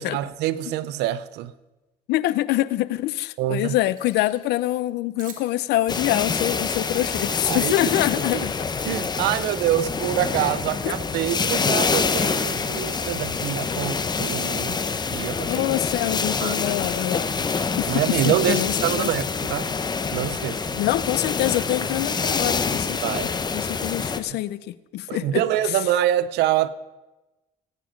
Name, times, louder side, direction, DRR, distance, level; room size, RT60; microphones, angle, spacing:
voice 1, 0.0-1.5 3.4-3.7 7.4-7.7 8.3-8.5 8.8-14.8 15.1-15.6 16.4-16.6 17.9-19.7 20.1-20.8 23.0-23.3 25.1-26.7, right 12 dB, 85° right, 0.6 m, -25 dB
voice 2, 2.1-8.6 10.8-11.0 15.4-17.5 17.8-19.3 20.8-25.4, left 15 dB, 80° left, 0.6 m, -25 dB
Keys jangling, 3.8-4.5 5.2-6.8 7.6-8.3 8.7-10.3 10.7-10.9 11.2-11.9 12.2-12.4 13.0-13.9 14.2-15.0 15.4-16.4 16.6-16.8 17.1-18.4 18.7-18.8 19.2-19.3 19.9-20.2 20.5-22.2, right 6 dB, 50° right, 2.4 m, -49 dB
sound 1, 5.9-24.2, left 5 dB, 25° left, 0.8 m, -26 dB
18.0 x 9.2 x 5.1 m
cardioid pair, 110°, 17 cm